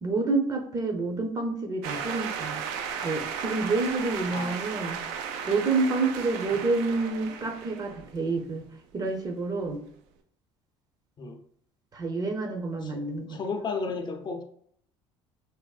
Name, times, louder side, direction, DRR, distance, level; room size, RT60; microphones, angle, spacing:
voice 1, 0.0-2.6 3.0-5.0 5.5-8.6 8.9-9.8 11.9-13.4, right 3 dB, 30° right, 0.6 m, -28 dB
sound 1, 1.8-8.6, right 7 dB, 80° right, 0.4 m, -35 dB
voice 2, 4.3-4.7 6.5-6.6 11.2-11.4 12.8-14.4, left 4 dB, 35° left, 0.5 m, -34 dB
3.3 x 2.1 x 2.3 m
supercardioid pair, 80°, 13 cm